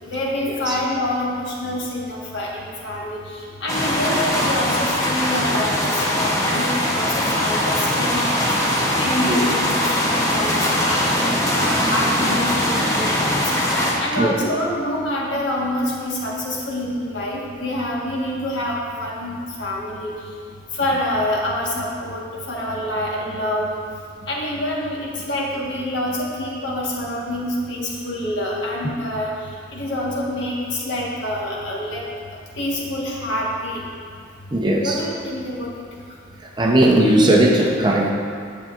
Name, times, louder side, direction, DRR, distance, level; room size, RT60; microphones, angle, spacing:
voice 1, 0.0-8.2 9.0-13.4 14.0-20.1 20.7-23.7 24.3-32.0 32.6-33.8 34.8-35.7, left 1 dB, 65° left, -4 dB, 1.4 m, -26 dB
sound 1, 3.7-13.9, left 1 dB, 15° left, 0.8 m, -21 dB
voice 2, 34.5-35.0 36.6-38.1, right 1 dB, 20° right, -2 dB, 0.6 m, -17 dB
10.5 x 7.1 x 2.5 m, 2.2 s
head